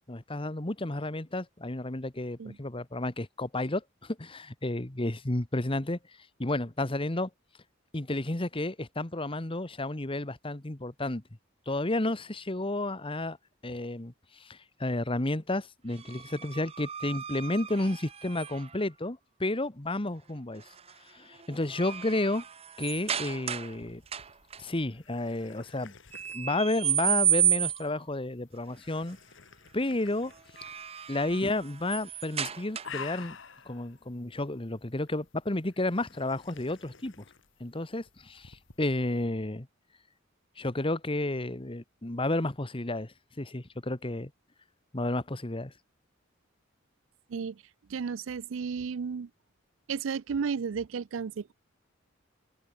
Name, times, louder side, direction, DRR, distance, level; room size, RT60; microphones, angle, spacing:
voice 1, 0.1-6.0 6.4-7.3 7.9-11.2 11.7-13.4 13.6-14.1 14.4-20.6 21.1-22.4 22.8-24.0 24.6-25.9 26.3-29.2 29.7-30.3 31.1-33.4 33.6-37.2 37.6-39.7 40.6-44.3 44.9-45.7, left 2 dB, 25° left, 1.4 m, -31 dB
sound 1, 15.9-18.8 20.6-20.9 21.3-23.8 24.1-24.6 26.1-28.0 30.3-33.2, right 10 dB, 30° right, 0.8 m, -32 dB
sound 2, 23.0-39.3, left 6 dB, 65° left, 2.1 m, -51 dB
voice 2, 47.3-47.6 47.9-49.3 49.9-51.5, right 6 dB, 70° right, 0.4 m, -33 dB
head